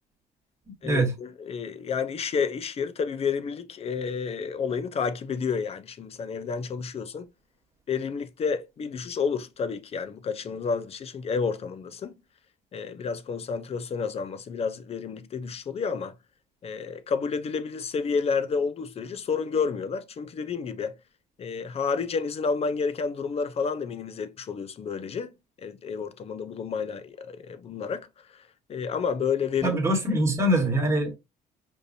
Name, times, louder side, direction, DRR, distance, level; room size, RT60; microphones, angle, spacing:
voice 1, 0.8-7.3 7.9-12.2 12.7-16.1 16.6-21.0 21.4-25.3 25.6-28.1 28.3-28.4 28.7-29.8, left 5 dB, 35° left, 0.6 m, -30 dB
voice 2, 29.6-31.2, right 1 dB, 15° right, 1.6 m, -23 dB
5.3 x 2.6 x 2.6 m
cardioid pair, 110°, 17 cm